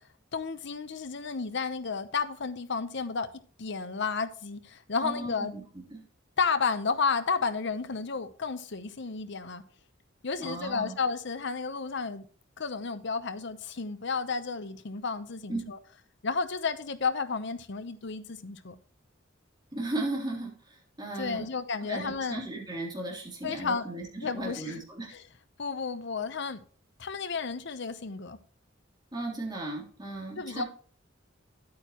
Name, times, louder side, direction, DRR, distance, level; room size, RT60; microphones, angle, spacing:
voice 1, 0.3-3.3 3.6-5.5 6.4-9.6 10.2-12.3 12.6-15.8 16.2-18.7 21.2-22.4 23.4-23.9 24.2-24.8 25.1-25.2 25.6-26.6 27.0-28.4 30.4-30.6, left 5 dB, 65° left, 0.8 m, -32 dB
voice 2, 5.0-5.6 5.9-6.0 10.4-11.0 15.5-15.6 19.7-21.5 21.9-25.1 29.1-30.7, right 2 dB, 20° right, 3.2 m, -36 dB
10.0 x 8.8 x 3.0 m
head